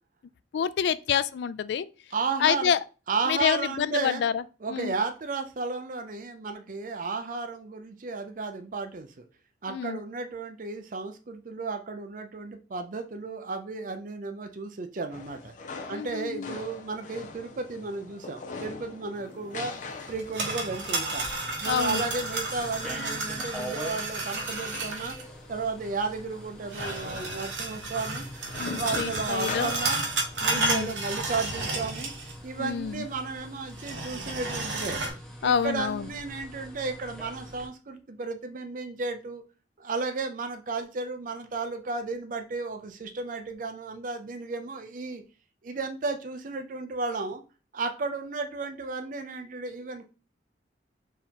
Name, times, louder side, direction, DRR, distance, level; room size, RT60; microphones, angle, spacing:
voice 1, 0.5-1.9 2.4-2.8 3.3-4.4 4.7-4.9 9.7-10.0 15.9-16.6 21.6-22.0 28.6-29.7 30.5-30.9 32.6-33.0 35.4-36.1, left 7 dB, 70° left, 0.3 m, -27 dB
voice 2, 2.1-2.7 3.1-4.2 4.6-9.2 9.6-15.5 15.9-19.7 20.1-21.2 21.6-25.2 25.5-28.3 28.6-30.0 30.4-32.1 32.4-35.0 35.4-39.4 39.8-45.2 45.6-47.4 47.7-50.0, right 4 dB, 45° right, 0.5 m, -33 dB
sound 1, 15.1-30.6, left 4 dB, 45° left, 0.7 m, -43 dB
sound 2, 20.1-25.2 26.7-32.4 32.7-32.8 33.7-35.1, right 2 dB, 80° right, 1.2 m, -32 dB
sound 3, 21.1-37.7, equal, 5° left, 0.7 m, -44 dB
4.4 x 2.9 x 3.6 m
head